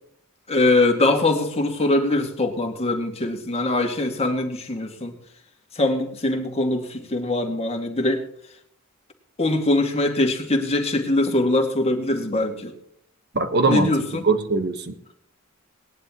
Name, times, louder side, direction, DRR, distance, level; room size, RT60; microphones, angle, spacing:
voice 1, 0.5-5.1 5.7-8.2 9.4-12.7 13.7-14.3, left 2 dB, 30° left, 2 dB, 2.2 m, -22 dB
voice 2, 13.3-15.2, right 3 dB, 50° right, 10 dB, 1.3 m, -22 dB
19.0 x 11.0 x 3.0 m, 0.65 s
head